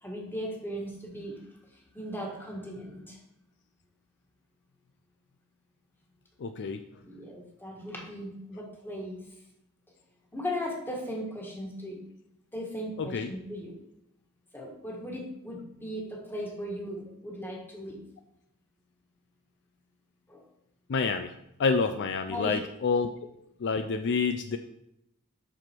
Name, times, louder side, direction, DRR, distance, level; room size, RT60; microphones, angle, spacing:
voice 1, 0.0-1.4 1.7-3.2 7.0-9.2 10.3-12.0 12.5-13.8 14.5-18.0 20.3-20.4 22.3-22.6, equal, 10° left, -1 dB, 1.7 m, -37 dB
voice 2, 6.4-6.8 13.0-13.3 20.9-21.3 21.6-23.1 23.6-24.6, left 5 dB, 50° left, 8 dB, 0.4 m, -28 dB
7.7 x 6.1 x 4.5 m, 0.83 s
head